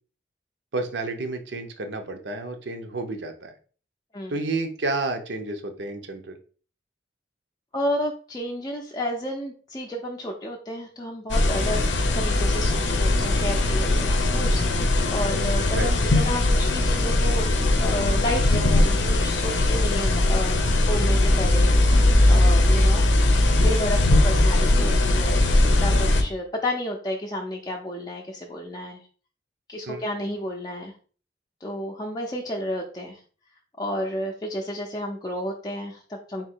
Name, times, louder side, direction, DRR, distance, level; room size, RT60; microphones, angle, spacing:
voice 1, 0.7-3.5 4.3-6.4 15.7-15.9 29.9-30.0, right 2 dB, 70° right, 6 dB, 0.7 m, -30 dB
voice 2, 7.7-17.5 17.8-20.6 20.9-22.0 22.3-23.0 23.6-25.4 25.8-29.0 29.7-30.9 31.6-33.2 33.8-36.5, left 1 dB, 20° left, -1 dB, 0.5 m, -31 dB
sound 1, 11.3-26.2, left 2 dB, 90° left, 0.7 m, -20 dB
3.6 x 2.8 x 4.4 m, 0.40 s
head